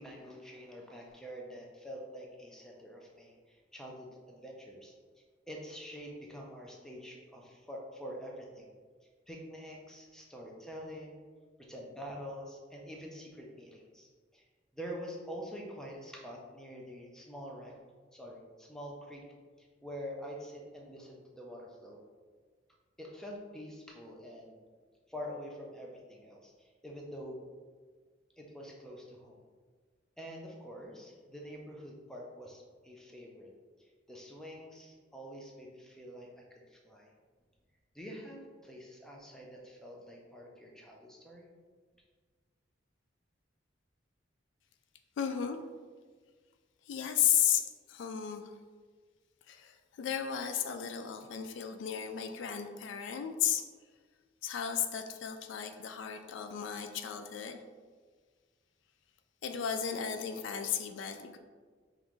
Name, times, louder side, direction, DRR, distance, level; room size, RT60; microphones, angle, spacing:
voice 1, 0.0-4.9 5.5-8.7 9.3-11.2 11.6-14.4 14.7-17.8 18.1-19.2 19.6-22.0 23.0-24.6 25.1-27.4 28.4-29.4 30.2-33.5 33.8-37.1 37.9-41.5, equal, 5° left, -1 dB, 0.5 m, -46 dB
voice 2, 45.2-45.6 46.9-48.4 49.5-53.6 54.4-57.6 59.4-61.4, left 9 dB, 65° left, 7 dB, 0.3 m, -34 dB
5.3 x 2.5 x 3.1 m, 1.5 s
head